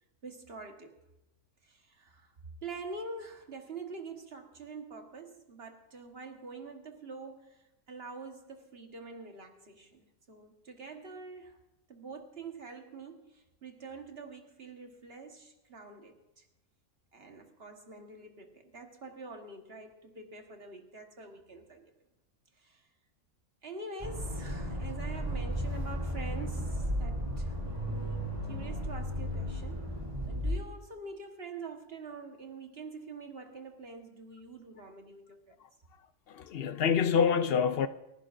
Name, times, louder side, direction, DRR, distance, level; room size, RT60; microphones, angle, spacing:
voice 1, 0.2-1.0 1.6-2.3 2.6-11.6 11.9-16.4 17.1-21.9 22.6-22.9 23.6-29.9 30.3-35.6, right 3 dB, 45° right, 1.6 m, -46 dB
Accelerating revving vroom, 24.0-30.6, equal, 20° right, 3.0 m, -34 dB
voice 2, 36.3-37.9, left 7 dB, 60° left, 0.6 m, -26 dB
29.5 x 11.0 x 2.6 m
omnidirectional pair, 1.5 m